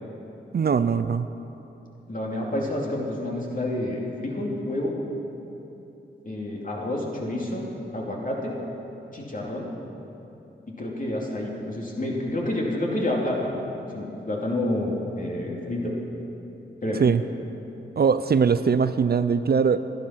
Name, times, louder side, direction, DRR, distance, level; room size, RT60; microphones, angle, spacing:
voice 1, 0.5-1.3 17.0-17.2 18.0-19.8, right 6 dB, 50° right, 12 dB, 0.5 m, -21 dB
voice 2, 2.1-5.0 6.2-7.6 7.9-8.5 9.1-9.7 10.8-13.6 13.9-16.0 16.8-17.0, left 1 dB, 40° left, -2 dB, 2.8 m, -29 dB
11.5 x 11.0 x 5.9 m, 2.9 s
cardioid pair, 45°, 21 cm